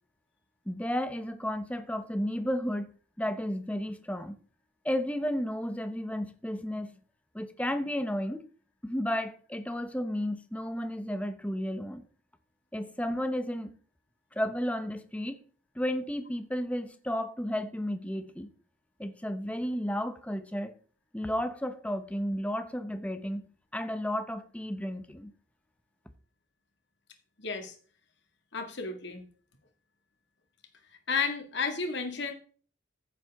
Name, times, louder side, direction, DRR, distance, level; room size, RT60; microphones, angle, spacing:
voice 1, 0.7-2.9 3.2-4.4 4.8-6.9 7.3-8.4 8.8-12.0 12.7-13.8 14.3-15.4 15.8-18.5 19.0-20.7 21.1-23.5 23.7-25.3, equal, 5° left, 0.8 m, -33 dB
voice 2, 27.4-27.7 28.5-29.2 31.1-32.3, left 5 dB, 55° left, 1.9 m, -32 dB
14.5 x 7.6 x 3.6 m
head